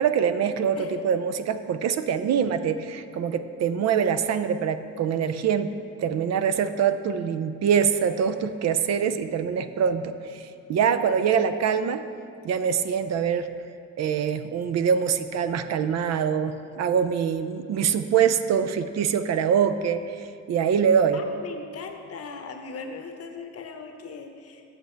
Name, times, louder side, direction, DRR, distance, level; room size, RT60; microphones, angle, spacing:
voice 1, 0.0-5.7 6.0-12.0 12.4-13.5 14.0-21.2, right 7 dB, 60° right, 11 dB, 0.5 m, -24 dB
voice 2, 21.1-24.6, left 4 dB, 55° left, 5 dB, 0.9 m, -39 dB
7.5 x 7.3 x 4.5 m, 2.6 s
cardioid pair, 90°, 30 cm